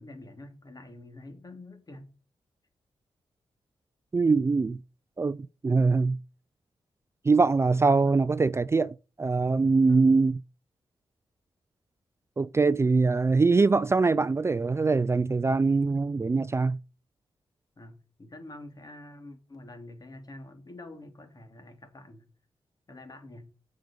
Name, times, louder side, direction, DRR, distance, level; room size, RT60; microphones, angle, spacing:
voice 1, 0.0-2.1 7.9-8.2 9.9-10.0 17.8-22.3 22.9-23.5, left 1 dB, 40° left, 2.9 m, -46 dB
voice 2, 4.1-4.8 5.2-6.2 7.2-10.4 12.4-16.8, right 4 dB, 25° right, 0.4 m, -23 dB
7.8 x 6.3 x 6.9 m
cardioid pair, 70°, 10 cm